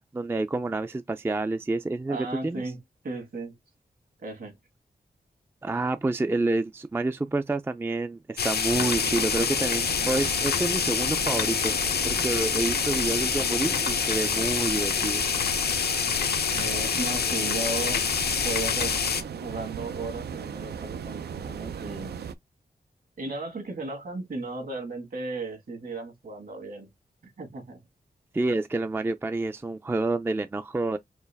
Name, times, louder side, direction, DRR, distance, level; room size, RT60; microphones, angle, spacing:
voice 1, 0.0-2.6 5.6-11.7 12.0-15.2 28.3-31.0, right 2 dB, 15° right, 0.3 m, -28 dB
voice 2, 2.1-2.8 3.0-3.6 4.2-4.5 16.5-18.9 19.4-22.3 23.2-26.9 27.2-27.8, right 3 dB, 60° right, 1.7 m, -35 dB
sound 1, 8.4-19.2, left 6 dB, 80° left, 0.6 m, -26 dB
sound 2, 8.7-22.3, right 7 dB, 90° right, 0.4 m, -38 dB
4.4 x 2.3 x 3.4 m
wide cardioid pair, 85°, 16 cm